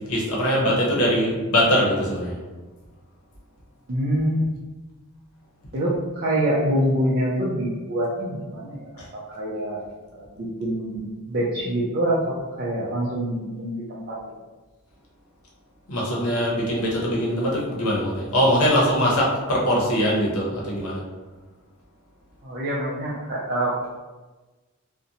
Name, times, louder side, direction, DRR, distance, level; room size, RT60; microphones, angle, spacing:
voice 1, 0.1-2.4 15.9-21.0, equal, 85° left, -4 dB, 0.7 m, -22 dB
voice 2, 3.9-4.5 5.7-9.8 10.1-14.3 22.4-23.7, right 1 dB, 45° right, -7 dB, 0.4 m, -25 dB
2.5 x 2.1 x 2.7 m, 1.2 s
head